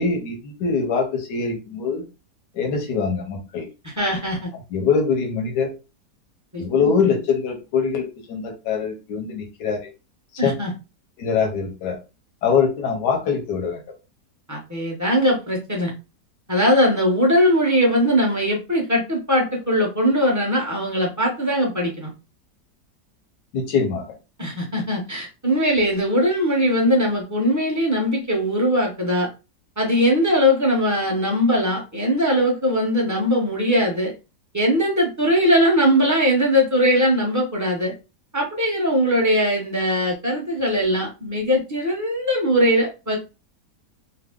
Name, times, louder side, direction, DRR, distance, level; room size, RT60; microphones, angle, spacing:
voice 1, 0.0-2.0 2.5-3.7 4.7-5.7 6.6-9.9 10.4-10.5 11.2-12.0 12.4-13.8 23.5-24.2, left 5 dB, 90° left, 3 dB, 1.5 m, -23 dB
voice 2, 3.8-4.5 6.5-6.9 10.4-10.7 14.5-15.9 16.5-22.1 24.4-29.3 29.8-34.1 34.5-37.9 38.3-43.2, equal, 15° right, -1 dB, 0.7 m, -20 dB
3.4 x 2.1 x 3.5 m, 0.28 s
omnidirectional pair, 1.8 m